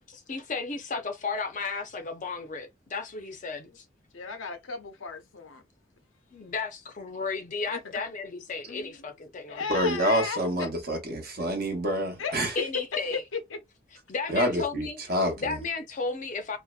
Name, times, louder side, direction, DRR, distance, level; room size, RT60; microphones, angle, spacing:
voice 1, 0.1-3.8 6.3-9.8 12.6-13.2 14.1-15.0 15.4-16.6, left 4 dB, 40° left, 0.5 m, -34 dB
voice 2, 4.1-5.6 7.7-7.8 8.7-9.1 9.5-10.7 12.2-12.6 13.5-13.6, left 5 dB, 90° left, 0.6 m, -35 dB
voice 3, 9.7-12.5 14.3-15.6, equal, 50° right, 0.8 m, -27 dB
2.6 x 2.1 x 2.3 m
head